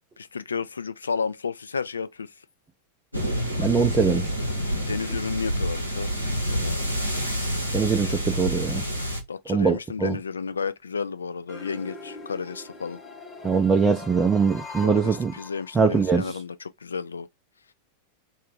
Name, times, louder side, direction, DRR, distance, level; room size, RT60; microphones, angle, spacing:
voice 1, 0.2-2.3 4.7-6.1 6.5-6.8 8.0-8.2 9.3-13.0 14.8-17.3, left 5 dB, 75° left, 0.3 m, -32 dB
sound 1, 3.1-9.2, equal, 90° left, 0.9 m, -27 dB
voice 2, 3.6-4.3 7.7-8.9 9.5-10.2 13.4-15.3 15.7-16.2, right 5 dB, 15° right, 0.5 m, -22 dB
sound 2, 11.5-16.1, left 3 dB, 15° left, 1.0 m, -42 dB
2.5 x 2.2 x 3.3 m
figure-of-eight pair, 90°, 0 cm